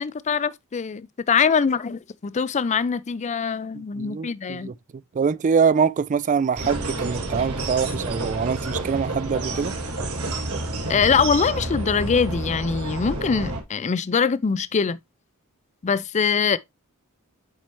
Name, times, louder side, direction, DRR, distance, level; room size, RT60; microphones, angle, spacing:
voice 1, 0.0-4.7 10.9-15.0 15.8-16.6, left 6 dB, 30° left, 0.4 m, -23 dB
voice 2, 3.7-4.7 5.1-9.7, right 6 dB, 35° right, 0.3 m, -24 dB
sound 1, 6.5-13.6, right 2 dB, 80° right, 2.2 m, -29 dB
8.4 x 4.6 x 3.0 m
head